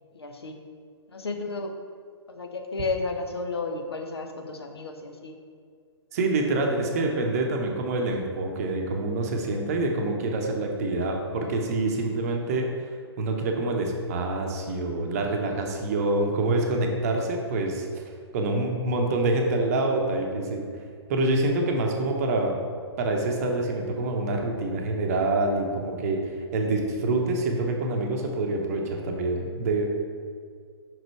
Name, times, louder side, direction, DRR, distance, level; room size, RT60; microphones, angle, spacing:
voice 1, 0.1-0.6 1.1-1.7 2.3-5.3, left 3 dB, 65° left, 4 dB, 0.8 m, -32 dB
voice 2, 6.1-12.7 13.2-18.0 18.3-20.6 21.1-22.5 23.0-29.9, right 2 dB, 35° right, 2 dB, 0.8 m, -26 dB
5.9 x 5.1 x 4.4 m, 2.1 s
figure-of-eight pair, 125°, 14 cm